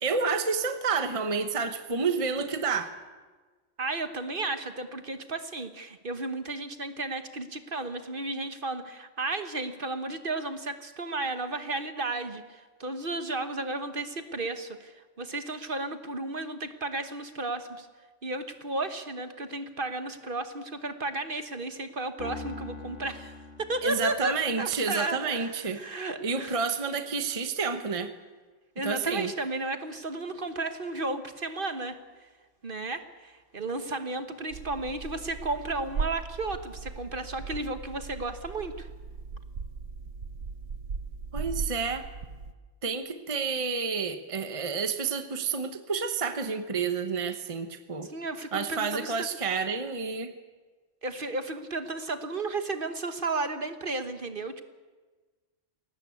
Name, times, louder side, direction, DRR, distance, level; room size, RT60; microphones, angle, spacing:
voice 1, 0.0-2.9 23.8-25.8 26.2-28.1 28.8-29.3 41.3-42.1 42.8-48.1 48.5-50.3, right 5 dB, 30° right, 9 dB, 1.1 m, -29 dB
voice 2, 3.8-17.9 18.2-26.6 28.8-32.0 32.6-38.9 48.0-49.1 51.0-54.6, right 2 dB, 45° right, 9 dB, 1.4 m, -33 dB
Piano, 22.2-24.6, left 3 dB, 75° left, 2.7 m, -42 dB
sound 1, 34.5-42.5, right 4 dB, 80° right, 1.4 m, -38 dB
21.0 x 18.5 x 8.5 m, 1.3 s
omnidirectional pair, 1.2 m